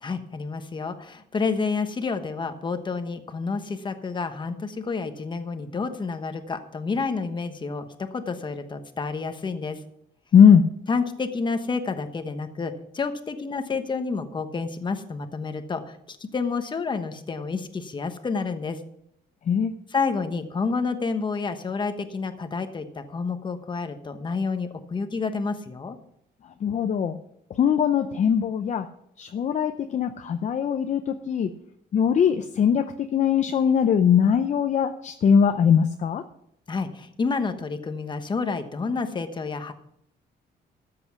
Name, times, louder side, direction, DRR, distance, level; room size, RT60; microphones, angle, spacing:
voice 1, 0.0-9.8 10.9-18.8 19.9-26.0 36.7-39.7, left 4 dB, 25° left, 8 dB, 1.2 m, -29 dB
voice 2, 10.3-10.7 19.5-19.7 26.6-27.2 27.5-28.9 29.2-31.5 31.9-36.2, left 7 dB, 40° left, 7 dB, 0.6 m, -20 dB
13.5 x 7.8 x 6.0 m, 0.74 s
cardioid pair, 145°, 18 cm